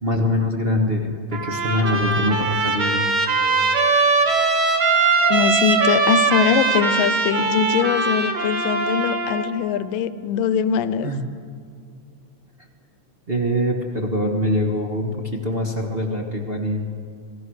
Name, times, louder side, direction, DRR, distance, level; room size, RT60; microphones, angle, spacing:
voice 1, 0.0-3.1 11.0-11.3 13.3-16.8, left 1 dB, 80° right, 1 dB, 0.5 m, -23 dB
Trumpet, 1.3-9.5, right 4 dB, 55° right, 2.8 m, -21 dB
voice 2, 5.3-11.1, left 7 dB, 85° left, 13 dB, 2.4 m, -22 dB
27.0 x 17.5 x 6.4 m, 2.2 s
omnidirectional pair, 3.9 m